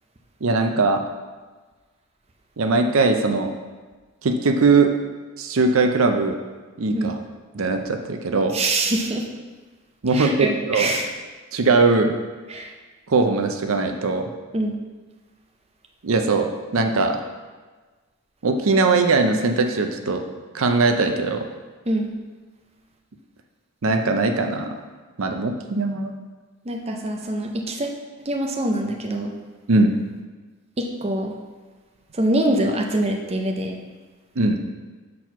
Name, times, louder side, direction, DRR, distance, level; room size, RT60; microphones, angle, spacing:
voice 1, 0.4-1.0 2.6-3.5 4.2-4.9 5.4-6.4 6.8-7.2 7.5-8.6 10.0-10.9 11.5-12.1 13.1-14.3 16.0-17.2 18.4-20.2 20.5-21.5 23.8-24.8 25.2-26.1 29.7-29.9 34.4-34.6, right 3 dB, 70° right, 5 dB, 0.6 m, -20 dB
voice 2, 8.5-9.3 10.1-11.1 12.5-12.7 14.5-14.8 21.9-22.1 26.6-28.0 28.2-29.3 30.8-31.4 32.1-33.8, right 1 dB, 30° right, 2 dB, 0.6 m, -24 dB
6.2 x 4.5 x 5.9 m, 1.4 s
head